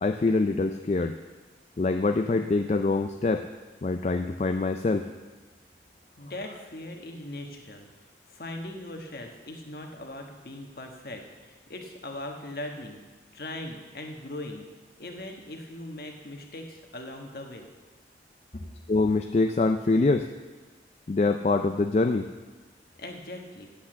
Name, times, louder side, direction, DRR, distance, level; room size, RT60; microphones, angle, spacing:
voice 1, 0.0-1.2 1.8-3.4 3.8-5.1 18.9-20.3 21.1-22.3, left 3 dB, 35° left, 6 dB, 0.4 m, -24 dB
voice 2, 6.2-7.9 8.3-13.0 13.3-14.7 15.0-17.7 23.0-23.7, left 1 dB, 55° left, 3 dB, 1.3 m, -40 dB
8.4 x 8.1 x 7.5 m, 1.3 s
head